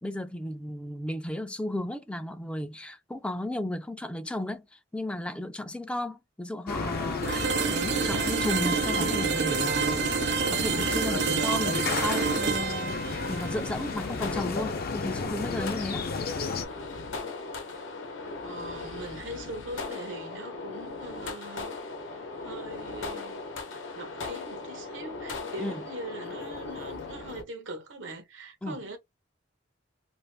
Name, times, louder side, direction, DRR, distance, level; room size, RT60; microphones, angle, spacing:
voice 1, 0.0-16.1 25.6-25.8 28.6-28.8, left 1 dB, 5° left, 0.3 m, -34 dB
sound 1, 6.7-16.7, left 4 dB, 55° left, 0.5 m, -32 dB
sound 2, 7.2-15.1, right 6 dB, 65° right, 0.5 m, -29 dB
sound 3, 13.0-27.4, left 3 dB, 85° left, 0.8 m, -38 dB
voice 2, 18.4-21.7 22.1-23.4 23.9-29.0, right 1 dB, 85° right, 1.1 m, -41 dB
2.5 x 2.5 x 3.3 m
head